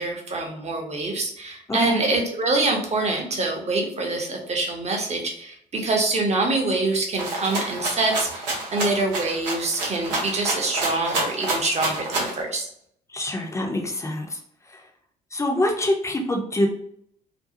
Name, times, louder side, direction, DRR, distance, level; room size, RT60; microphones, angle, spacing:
voice 1, 0.0-12.7, right 2 dB, 30° right, 1 dB, 0.8 m, -25 dB
voice 2, 1.7-2.0 13.1-14.2 15.3-16.7, left 1 dB, 15° left, 2 dB, 0.6 m, -25 dB
Rattle (instrument), 7.2-12.4, right 2 dB, 80° right, 0.7 m, -28 dB
2.6 x 2.3 x 2.7 m, 0.68 s
figure-of-eight pair, 50°, 21 cm